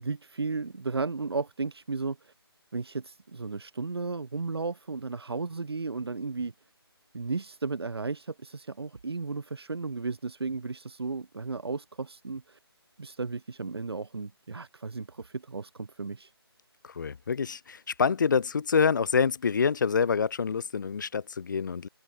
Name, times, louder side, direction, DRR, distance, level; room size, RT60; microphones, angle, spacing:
voice 1, 0.0-2.3 2.7-6.5 7.1-12.6 13.0-16.3, right 4 dB, 70° right, 2.6 m, -34 dB
voice 2, 16.8-21.9, left 6 dB, 50° left, 2.0 m, -26 dB
figure-of-eight pair, 165°, 13 cm